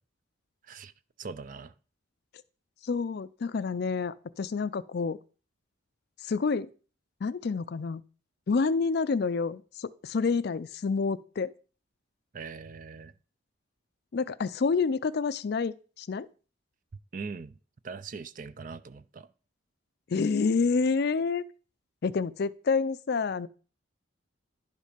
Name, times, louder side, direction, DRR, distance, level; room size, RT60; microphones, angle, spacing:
voice 1, 1.2-1.7 12.3-13.1 17.1-17.5 17.8-19.3, right 4 dB, 40° right, 0.4 m, -41 dB
voice 2, 2.8-5.2 6.3-6.7 7.2-8.0 8.5-11.5 14.1-16.3 20.1-21.4 22.0-23.5, left 4 dB, 50° left, 0.4 m, -28 dB
11.0 x 5.3 x 5.0 m
head